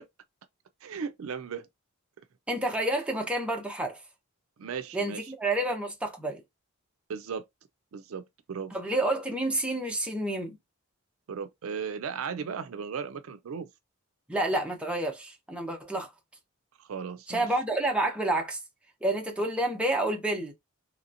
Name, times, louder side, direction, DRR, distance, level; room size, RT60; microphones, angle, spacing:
voice 1, 0.8-1.7 4.6-5.3 7.1-7.4 7.9-8.2 8.5-8.8 11.3-13.7 16.8-17.5, right 6 dB, 70° right, 0.4 m, -36 dB
voice 2, 2.5-4.0 4.9-6.4 8.7-10.5 14.3-16.1 17.3-18.6 19.0-20.5, right 1 dB, 5° right, 0.7 m, -29 dB
3.1 x 2.9 x 2.5 m
head